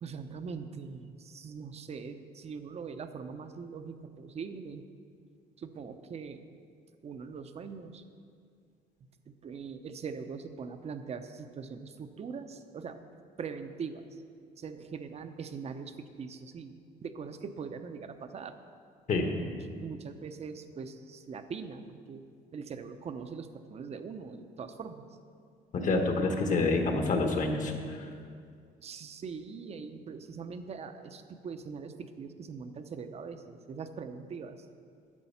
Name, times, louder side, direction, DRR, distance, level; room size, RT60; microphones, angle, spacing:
voice 1, 0.0-4.8 5.6-6.4 7.0-8.0 9.3-13.0 13.4-14.2 14.6-16.7 17.0-18.5 19.4-19.5 19.8-22.2 22.5-25.1 28.8-34.7, right 5 dB, 40° right, 9 dB, 0.7 m, -42 dB
voice 2, 25.7-28.1, left 3 dB, 50° left, 4 dB, 1.3 m, -28 dB
10.5 x 6.9 x 5.7 m, 2.3 s
cardioid pair, 110°, 17 cm